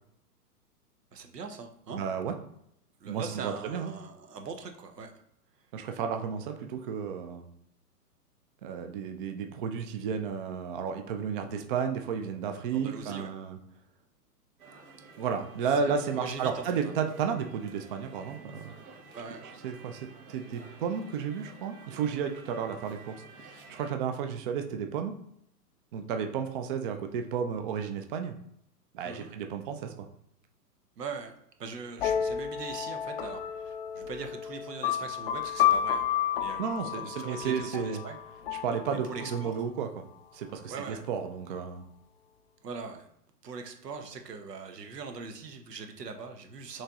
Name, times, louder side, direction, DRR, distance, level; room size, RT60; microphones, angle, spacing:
voice 1, 1.1-2.0 3.0-5.1 12.7-13.3 16.1-16.9 19.1-19.4 29.0-29.3 31.0-31.3 31.6-36.0 36.4-38.2 39.1-39.5 40.7-41.0 42.6-43.1 43.4-46.8, right 5 dB, 85° right, 5 dB, 1.0 m, -41 dB
voice 2, 1.9-2.3 3.0-3.9 5.7-7.4 8.6-13.6 15.2-18.7 19.6-25.1 25.9-28.3 28.9-30.1 36.6-38.0 38.5-40.0 40.3-41.8, right 6 dB, 35° right, 6 dB, 0.4 m, -33 dB
sound 1, 14.6-23.9, right 3 dB, 60° right, 1.3 m, -51 dB
sound 2, 32.0-39.6, left 10 dB, 40° left, 0.4 m, -31 dB
6.4 x 3.1 x 2.4 m, 0.74 s
hypercardioid pair, 120°, 47 cm